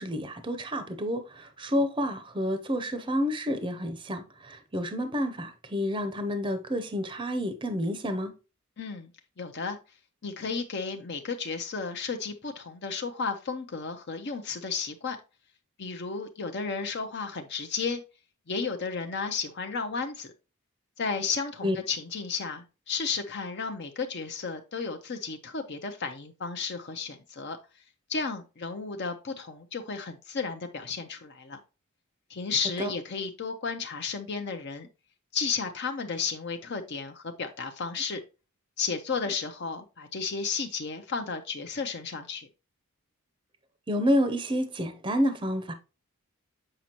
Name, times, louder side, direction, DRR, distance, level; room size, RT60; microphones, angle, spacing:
voice 1, 0.0-8.3 21.6-21.8 32.8-32.9 43.9-45.7, equal, 20° right, 0.6 m, -29 dB
voice 2, 8.8-9.1 9.4-9.8 10.2-15.2 15.8-18.0 18.5-20.3 21.0-27.6 28.1-31.6 32.3-34.9 35.3-38.2 38.8-42.5, left 5 dB, 50° left, 0.6 m, -33 dB
7.6 x 5.1 x 2.9 m
head